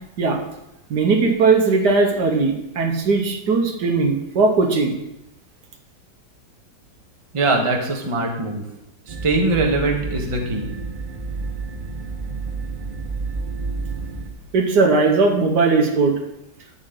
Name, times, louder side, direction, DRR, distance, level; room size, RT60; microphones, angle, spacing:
voice 1, 0.9-4.9 14.5-16.1, right 4 dB, 75° right, 3 dB, 1.7 m, -18 dB
voice 2, 7.3-8.6 9.1-10.7, right 2 dB, 20° right, 1 dB, 1.1 m, -22 dB
sound 1, 9.1-14.3, right 3 dB, 40° right, 0.8 m, -30 dB
11.0 x 7.5 x 3.8 m, 0.85 s
omnidirectional pair, 1.9 m